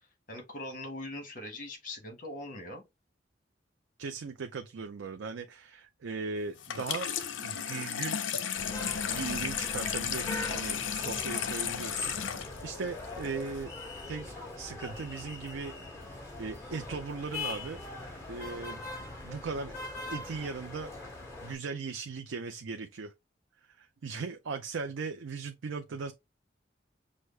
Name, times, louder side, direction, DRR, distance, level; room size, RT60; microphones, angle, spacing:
voice 1, 0.3-2.8, left 1 dB, 45° left, 1.5 m, -41 dB
voice 2, 4.0-7.1 7.4-8.2 9.1-13.7 14.1-16.0 16.4-17.8 18.3-18.8 19.2-19.7 20.1-20.9 21.4-23.1 23.8-26.1, right 4 dB, 90° right, 0.5 m, -38 dB
Water tap faucet / Sink (filling or washing), 6.6-13.6, left 8 dB, 85° left, 0.5 m, -34 dB
sound 1, 8.5-21.5, left 2 dB, 15° left, 1.9 m, -41 dB
6.2 x 2.1 x 3.2 m
head